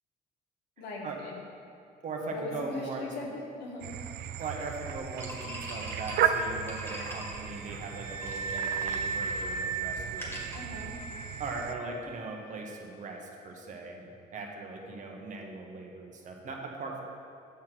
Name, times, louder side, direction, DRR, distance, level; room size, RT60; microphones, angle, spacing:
voice 1, 0.8-1.4 2.3-4.1 10.5-10.9, left 2 dB, 90° left, -2 dB, 1.6 m, -40 dB
voice 2, 2.0-3.3 4.4-10.6 11.4-17.0, right 3 dB, 50° right, 1 dB, 1.2 m, -39 dB
sound 1, 3.8-11.7, right 8 dB, 70° right, 0.5 m, -35 dB
sound 2, 5.2-11.4, left 1 dB, 15° left, 1.8 m, -45 dB
Wind instrument woodwind instrument, 5.7-13.1, right 5 dB, 25° right, 2.1 m, -38 dB
8.4 x 5.8 x 4.6 m, 2.6 s
cardioid pair, 110°, 17 cm